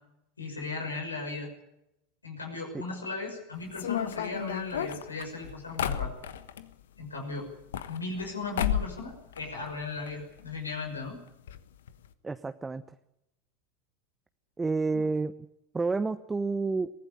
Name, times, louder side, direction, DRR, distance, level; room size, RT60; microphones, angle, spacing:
voice 1, 0.4-1.5 2.2-6.1 7.0-7.5 7.9-11.2 14.9-15.0, left 3 dB, 90° left, 3 dB, 6.0 m, -36 dB
sound 1, 3.7-6.7 7.5-8.3 8.6-9.0 9.3-10.1 10.4-10.5 10.7-10.8 11.5-11.6 11.9-12.1, left 10 dB, 70° left, 1.3 m, -32 dB
voice 2, 12.2-12.8 14.6-15.3 15.7-16.9, right 3 dB, 15° right, 11 dB, 0.9 m, -29 dB
23.5 x 16.0 x 8.8 m, 0.87 s
figure-of-eight pair, 85°, 0 cm